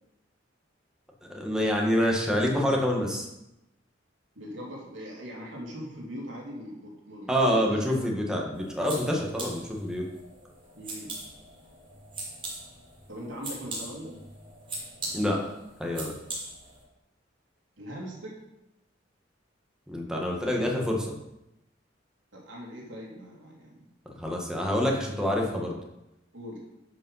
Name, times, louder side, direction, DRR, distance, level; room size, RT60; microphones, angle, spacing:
voice 1, 1.3-3.3 7.3-10.0 15.1-15.4 15.8-16.1 19.9-21.1 24.2-25.7, equal, 5° right, -1 dB, 1.7 m, -26 dB
voice 2, 4.3-7.9 10.8-11.2 13.1-14.2 17.8-18.4 22.3-23.8 26.3-26.6, equal, 80° right, -3 dB, 3.0 m, -40 dB
sound 1, 8.5-16.8, right 2 dB, 30° right, 2.5 m, -41 dB
10.5 x 5.5 x 5.7 m, 0.88 s
head